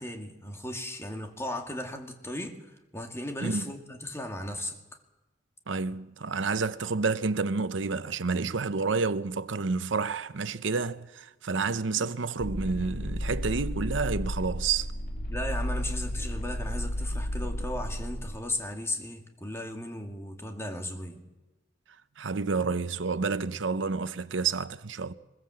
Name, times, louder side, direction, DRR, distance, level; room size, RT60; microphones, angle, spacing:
voice 1, 0.0-4.8 15.3-21.2, left 1 dB, 15° left, 2.3 m, -36 dB
voice 2, 5.7-14.9 22.2-25.1, right 4 dB, 85° right, 0.8 m, -29 dB
sound 1, 12.4-18.4, equal, 50° left, 3.1 m, -33 dB
23.0 x 21.5 x 7.7 m
head